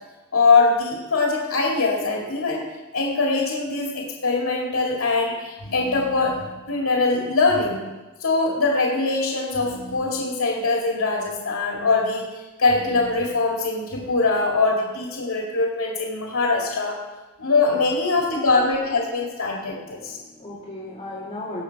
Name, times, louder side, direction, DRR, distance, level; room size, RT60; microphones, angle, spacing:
voice 1, 0.3-2.6 2.9-7.8 8.2-17.0 17.4-20.2, left 3 dB, 85° left, -1 dB, 2.1 m, -22 dB
voice 2, 18.1-18.7 19.8-21.6, left 1 dB, 25° left, -9 dB, 2.3 m, -36 dB
18.0 x 6.8 x 4.6 m, 1.1 s
head